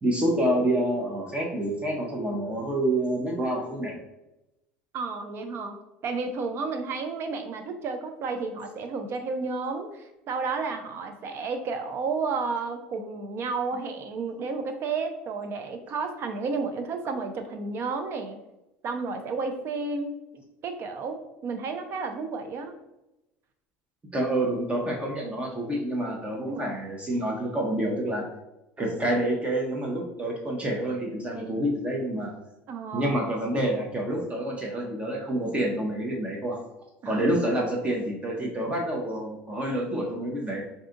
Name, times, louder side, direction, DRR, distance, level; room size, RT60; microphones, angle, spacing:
voice 1, 0.0-4.0 24.1-28.3 28.8-32.3 32.9-36.6 37.0-40.6, right 1 dB, 20° right, -1 dB, 0.7 m, -28 dB
voice 2, 4.9-5.8 6.0-18.4 18.8-22.8 26.4-26.8 32.7-33.2 37.0-37.2, right 4 dB, 50° right, 7 dB, 0.5 m, -32 dB
2.7 x 2.4 x 3.7 m, 0.94 s
supercardioid pair, 95°, 6 cm